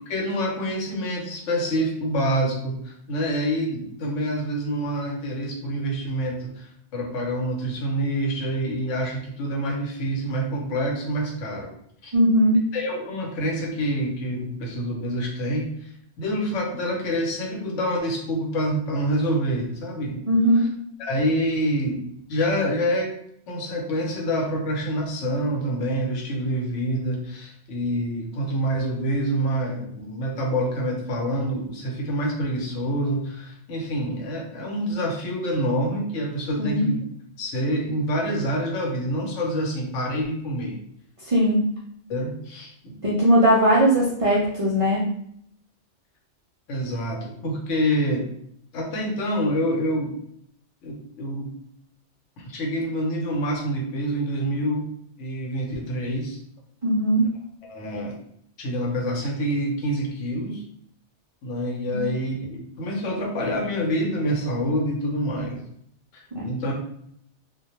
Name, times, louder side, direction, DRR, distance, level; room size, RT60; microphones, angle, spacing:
voice 1, 0.1-11.7 12.0-12.1 12.7-20.2 21.0-23.1 23.5-37.0 37.4-40.8 42.1-43.0 46.7-48.3 48.7-50.2 50.8-51.5 52.4-54.9 55.2-56.4 57.7-58.2 58.6-60.6 61.4-65.6 66.1-66.7, equal, 85° left, 0 dB, 1.0 m, -27 dB
voice 2, 12.1-12.6 20.3-20.7 36.6-36.9 41.2-41.6 43.0-45.0 56.8-57.3 61.9-62.0 66.3-66.5, equal, 55° right, -6 dB, 0.4 m, -19 dB
2.2 x 2.1 x 2.9 m, 0.69 s
omnidirectional pair, 1.2 m